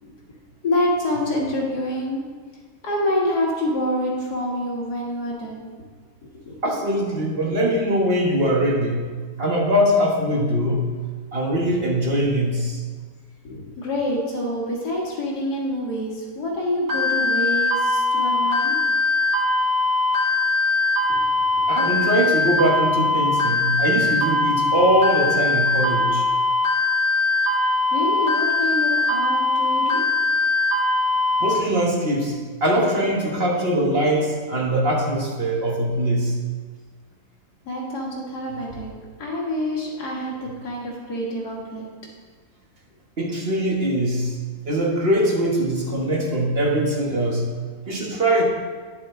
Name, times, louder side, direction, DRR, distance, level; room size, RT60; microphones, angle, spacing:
voice 1, 0.6-2.2 2.8-5.7 6.5-6.6 11.6-11.8 13.4-18.8 27.6-30.0 37.7-38.9 39.2-40.3 40.6-41.9, left 1 dB, 80° left, -3 dB, 2.2 m, -26 dB
voice 2, 6.6-9.1 9.4-10.8 11.3-12.8 21.7-26.2 31.4-32.4 32.6-36.3 43.2-44.4 44.7-47.4 47.9-48.4, equal, 40° right, -2 dB, 1.4 m, -22 dB
sound 1, 16.9-31.5, left 3 dB, 65° right, 2.1 m, -21 dB
10.0 x 6.8 x 3.7 m, 1.5 s
omnidirectional pair, 1.7 m